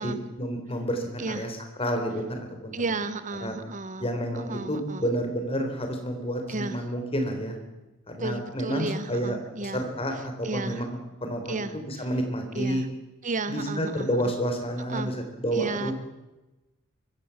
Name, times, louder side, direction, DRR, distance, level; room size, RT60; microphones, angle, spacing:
voice 1, 0.0-2.7 3.4-3.5 4.0-7.6 8.1-10.1 10.4-12.8 13.5-15.9, equal, 30° left, 5 dB, 3.9 m, -30 dB
voice 2, 1.2-1.5 2.7-4.1 4.3-5.0 6.5-6.8 8.2-9.8 10.1-10.9 11.5-12.1 12.5-12.9 13.2-14.1 14.9-15.1 15.5-15.9, right 3 dB, 40° right, 12 dB, 0.9 m, -33 dB
24.0 x 15.0 x 7.2 m, 1.0 s
head